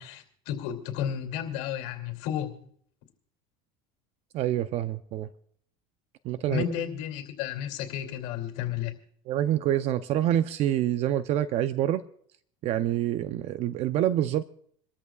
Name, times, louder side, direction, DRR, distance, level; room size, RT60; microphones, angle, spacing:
voice 1, 0.0-2.5 6.4-8.9, left 10 dB, 70° left, 2.7 m, -32 dB
voice 2, 4.3-5.3 6.2-6.6 9.3-12.0 12.6-14.4, right 12 dB, 50° right, 0.6 m, -26 dB
27.5 x 13.5 x 2.4 m
supercardioid pair, 135°, 14 cm